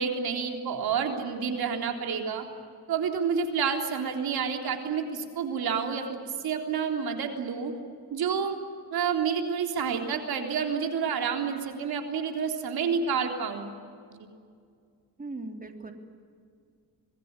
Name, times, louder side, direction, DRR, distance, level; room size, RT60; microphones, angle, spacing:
voice 1, 0.0-2.4 2.9-7.7 8.1-8.6 8.9-13.7 14.2-14.3, right 6 dB, 75° right, 4 dB, 3.7 m, -29 dB
voice 2, 15.2-15.9, right 2 dB, 20° right, 5 dB, 3.2 m, -38 dB
26.0 x 20.0 x 9.7 m, 2.2 s
cardioid pair, 110°, 37 cm